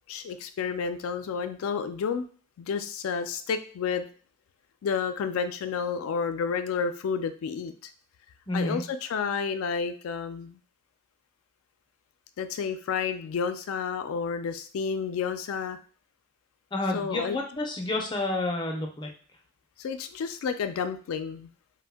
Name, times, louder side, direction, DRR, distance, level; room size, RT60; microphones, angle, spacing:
voice 1, 0.1-2.2 2.6-4.1 4.8-7.7 8.5-10.6 12.4-15.8 16.9-17.4 19.8-21.5, left 6 dB, 85° left, 9 dB, 0.3 m, -30 dB
voice 2, 8.5-8.8 16.7-19.1, left 2 dB, 20° left, 2 dB, 0.4 m, -29 dB
2.6 x 2.1 x 3.4 m, 0.41 s
head